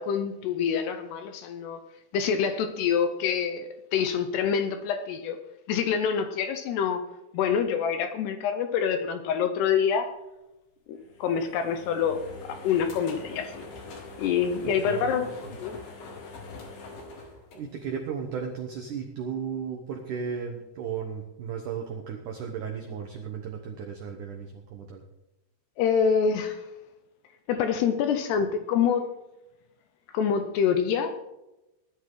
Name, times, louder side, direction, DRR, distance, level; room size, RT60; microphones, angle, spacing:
voice 1, 0.0-1.8 2.1-5.4 5.7-7.0 7.3-10.1 10.9-13.7 14.2-15.8 25.8-26.7 27.5-29.1 30.1-31.2, left 7 dB, 75° left, 8 dB, 2.6 m, -26 dB
sound 1, 10.9-18.2, left 3 dB, 55° left, 3.6 m, -43 dB
voice 2, 14.6-15.6 17.1-25.0, right 6 dB, 85° right, 3 dB, 1.8 m, -35 dB
19.0 x 11.5 x 3.9 m, 0.97 s
omnidirectional pair, 5.4 m